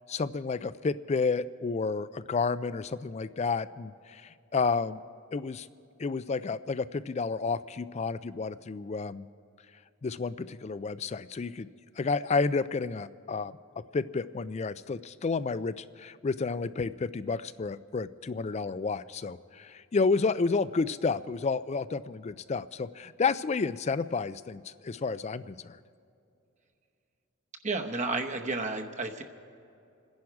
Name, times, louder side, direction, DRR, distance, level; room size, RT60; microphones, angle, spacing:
voice 1, 0.1-5.0 5.3-5.7 6.0-9.3 10.0-11.7 12.0-13.5 13.9-25.8, left 4 dB, 30° left, 16 dB, 0.3 m, -31 dB
voice 2, 27.6-29.2, right 3 dB, 35° right, 5 dB, 0.9 m, -31 dB
27.5 x 10.5 x 4.8 m, 2.6 s
head